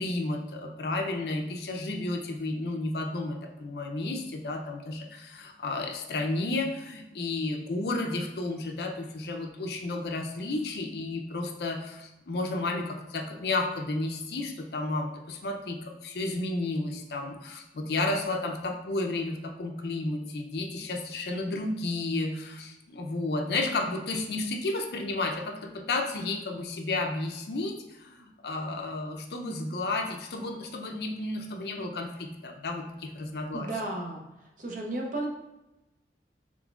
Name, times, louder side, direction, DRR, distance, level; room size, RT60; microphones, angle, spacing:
voice 1, 0.0-33.7, left 2 dB, 60° left, 3 dB, 0.5 m, -32 dB
voice 2, 33.5-34.2 34.6-35.3, right 2 dB, 45° right, 0 dB, 0.7 m, -33 dB
3.8 x 3.6 x 2.3 m, 1.0 s
head